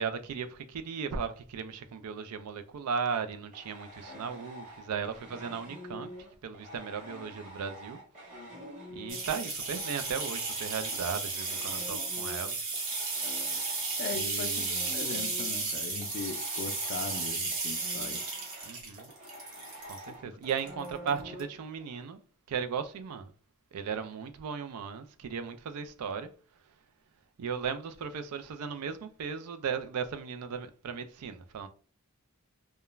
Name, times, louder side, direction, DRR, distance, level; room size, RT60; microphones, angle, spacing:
voice 1, 0.0-6.1 6.4-8.0 8.9-12.6 14.1-14.8 18.6-19.1 19.9-22.2 22.5-23.3 23.7-26.3 27.4-31.7, right 6 dB, 90° right, 0.4 m, -36 dB
sound 1, 3.1-9.4 9.6-22.0, equal, 30° right, 0.8 m, -47 dB
sound 2, 9.1-20.0 20.5-21.1 21.4-21.5, right 3 dB, 55° right, 1.0 m, -34 dB
voice 2, 14.0-14.6 14.9-18.3 20.3-20.4, left 5 dB, 50° left, 0.3 m, -39 dB
2.3 x 2.2 x 3.0 m
head